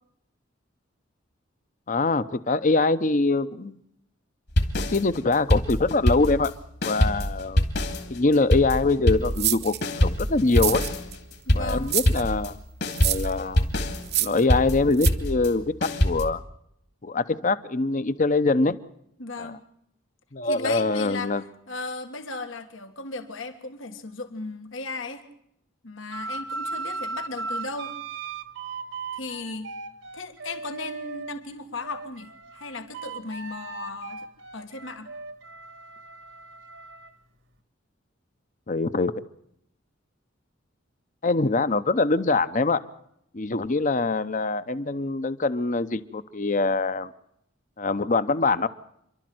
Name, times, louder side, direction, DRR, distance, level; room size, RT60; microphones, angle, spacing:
voice 1, 1.9-3.8 4.8-6.5 6.8-7.6 8.1-10.8 11.5-12.6 13.0-13.7 14.2-16.4 17.0-18.8 19.4-19.5 20.3-21.4 38.7-39.1 41.2-42.8 43.3-47.1 47.8-48.7, left 3 dB, 40° left, 14 dB, 0.8 m, -24 dB
sound 1, 4.5-6.6 6.8-12.5 12.8-16.3, equal, 55° left, 2.5 m, -24 dB
sound 2, 9.4-9.8 10.5-11.2 11.9-12.2 12.9-13.3 14.0-14.4 15.0-15.1, right 14 dB, 55° right, 1.0 m, -26 dB
voice 2, 11.5-11.9 19.2-19.6 20.4-21.4 21.7-25.2 25.8-27.9 29.2-29.7 30.1-34.3 34.5-35.1, left 3 dB, 80° left, 7 dB, 1.8 m, -36 dB
sound 3, 26.1-31.4 31.8-37.1, right 3 dB, 75° right, 1.6 m, -37 dB
28.0 x 12.0 x 7.8 m, 0.75 s
head